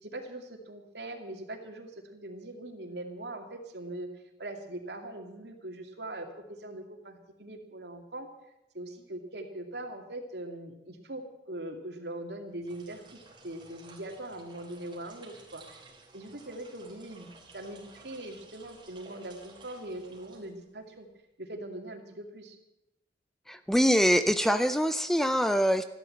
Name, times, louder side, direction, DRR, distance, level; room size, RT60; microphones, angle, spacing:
voice 1, 0.0-4.1 4.4-8.3 8.7-13.0 13.4-15.6 16.1-21.1 21.4-22.6, right 1 dB, 75° right, 4 dB, 2.4 m, -41 dB
sound 1, 12.5-20.9, right 2 dB, 25° right, 3.3 m, -54 dB
voice 2, 23.5-25.8, equal, ahead, 11 dB, 0.5 m, -24 dB
14.0 x 12.0 x 7.8 m, 0.89 s
head